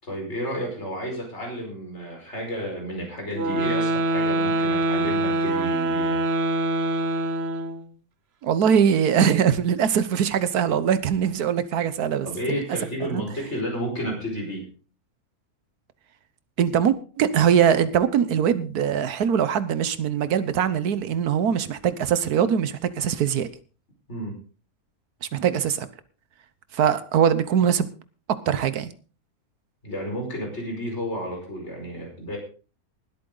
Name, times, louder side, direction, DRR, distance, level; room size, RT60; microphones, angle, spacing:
voice 1, 0.0-6.2 12.2-14.7 24.1-24.4 29.8-32.4, equal, 45° left, 1 dB, 5.2 m, -31 dB
sound 1, 3.3-7.9, right 1 dB, 50° right, 1.1 m, -24 dB
voice 2, 8.4-12.6 13.1-13.2 16.6-23.5 25.3-25.9 26.7-27.9 28.5-28.9, right 8 dB, 85° right, 14 dB, 1.5 m, -22 dB
19.5 x 8.6 x 3.9 m, 0.36 s
omnidirectional pair, 1.6 m